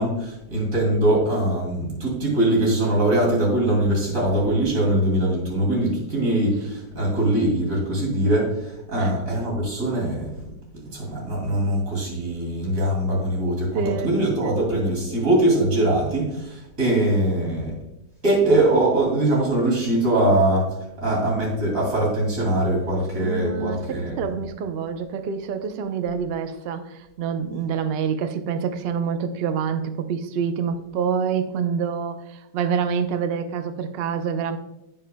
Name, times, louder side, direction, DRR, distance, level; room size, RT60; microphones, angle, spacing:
voice 1, 0.0-10.5 10.9-17.7 18.2-24.3, right 1 dB, 50° right, -2 dB, 3.0 m, -22 dB
voice 2, 13.7-14.1 14.4-14.5 23.2-34.6, right 6 dB, 80° right, 8 dB, 0.5 m, -27 dB
16.0 x 5.5 x 2.2 m, 0.88 s
omnidirectional pair, 1.8 m